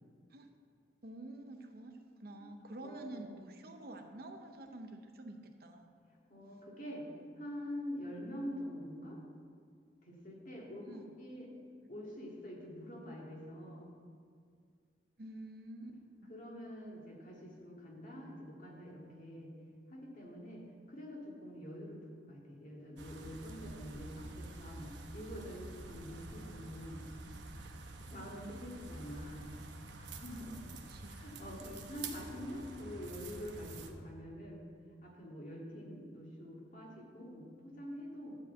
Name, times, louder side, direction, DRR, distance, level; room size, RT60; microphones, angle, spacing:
voice 1, 1.0-6.0 10.9-11.1 15.2-16.3 28.4-28.6 30.9-31.3, right 1 dB, 55° right, 5 dB, 0.8 m, -49 dB
voice 2, 2.8-3.4 6.3-7.1 7.4-9.2 10.0-10.9 11.2-11.5 11.9-13.9 16.3-19.5 19.9-27.0 28.1-29.5 30.0-30.6 31.0-34.7 35.0-38.4, equal, 45° left, -3 dB, 2.1 m, -46 dB
sound 1, 23.0-33.9, right 2 dB, 90° right, 0.9 m, -48 dB
11.5 x 4.7 x 7.8 m, 2.1 s
head